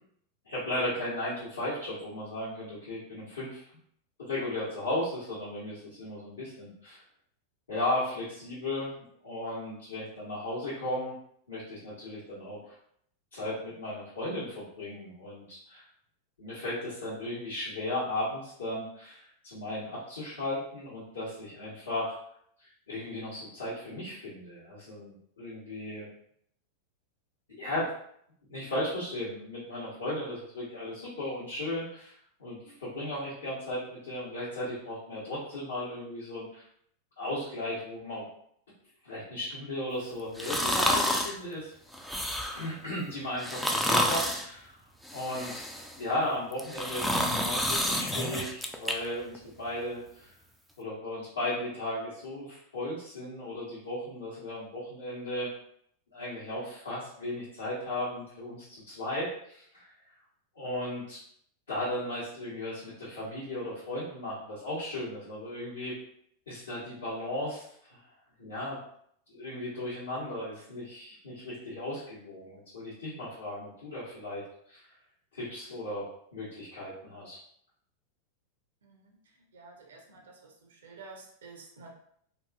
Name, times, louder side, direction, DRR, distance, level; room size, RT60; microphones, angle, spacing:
voice 1, 0.4-3.6 4.2-7.0 7.7-8.9 9.2-11.1 11.5-12.7 13.3-15.9 16.4-22.2 22.6-26.1 27.6-27.9 28.5-36.6 37.2-38.2 39.0-41.7 42.5-44.8 45.1-45.6 46.0-50.3 50.8-55.5 56.1-59.9 60.5-61.2 61.7-66.0 66.5-68.0 68.4-68.8 69.3-74.8 75.3-77.4, left 1 dB, 70° left, -10 dB, 0.9 m, -36 dB
sound 1, 40.4-41.4 41.9-42.7 43.4-44.5 45.0-46.0 46.5-48.9 49.3-49.4, equal, ahead, 0.3 m, -29 dB
voice 2, 79.5-81.9, right 3 dB, 65° right, 1 dB, 0.6 m, -50 dB
2.8 x 2.4 x 2.3 m, 0.68 s
figure-of-eight pair, 90°, 0 cm